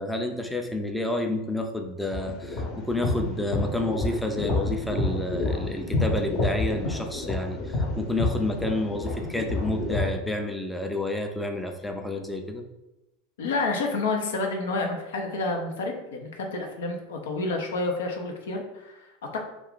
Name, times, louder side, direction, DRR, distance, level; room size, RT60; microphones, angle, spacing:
voice 1, 0.0-12.6, left 2 dB, 5° left, 3 dB, 0.4 m, -30 dB
sound 1, 2.1-10.1, left 2 dB, 45° left, 0.8 m, -28 dB
voice 2, 13.4-19.4, left 3 dB, 75° left, 3 dB, 0.5 m, -29 dB
2.4 x 2.3 x 3.7 m, 0.93 s
hypercardioid pair, 90°, 0 cm